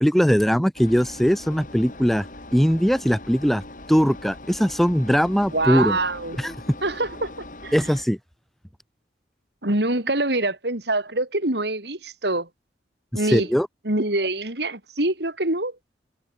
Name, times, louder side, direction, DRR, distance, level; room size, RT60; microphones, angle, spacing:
voice 1, 0.0-2.3 2.5-3.6 3.9-6.0 6.4-6.5 7.7-8.2 13.1-13.7, equal, ahead, 0.8 m, -20 dB
Engine, 0.8-8.0, left 2 dB, 45° left, 5.3 m, -41 dB
voice 2, 5.5-6.4 6.8-7.8 9.6-12.5 13.1-13.5 13.9-15.8, right 2 dB, 65° right, 3.9 m, -25 dB
head